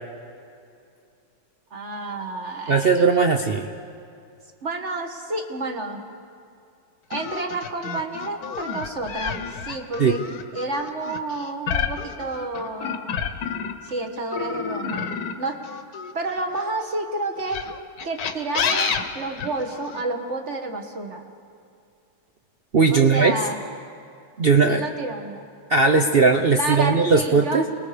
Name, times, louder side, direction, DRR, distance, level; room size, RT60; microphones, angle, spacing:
voice 1, 1.7-3.0 4.6-6.0 7.1-10.2 10.5-13.2 13.8-15.1 15.4-15.6 16.1-17.6 18.0-21.3 22.9-23.6 24.7-25.5 26.5-27.6, right 2 dB, 40° right, 4 dB, 1.6 m, -30 dB
voice 2, 2.7-3.7 10.0-10.1 22.7-23.3 24.4-24.8 25.7-27.6, right 4 dB, 70° right, 4 dB, 0.5 m, -18 dB
sound 1, 7.1-13.9 14.3-16.7 17.4-20.0, left 6 dB, 55° left, 1.4 m, -29 dB
28.5 x 20.5 x 5.1 m, 2.4 s
omnidirectional pair, 2.2 m